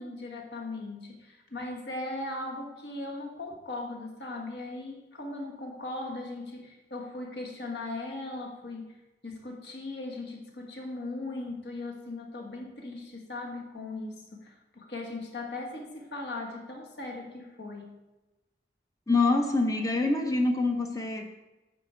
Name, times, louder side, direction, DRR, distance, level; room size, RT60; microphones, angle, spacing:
voice 1, 0.0-9.0 9.2-18.0, left 2 dB, 60° left, 0 dB, 1.3 m, -38 dB
voice 2, 19.1-21.3, left 3 dB, 20° left, 4 dB, 0.6 m, -25 dB
8.8 x 4.9 x 4.4 m, 1.0 s
head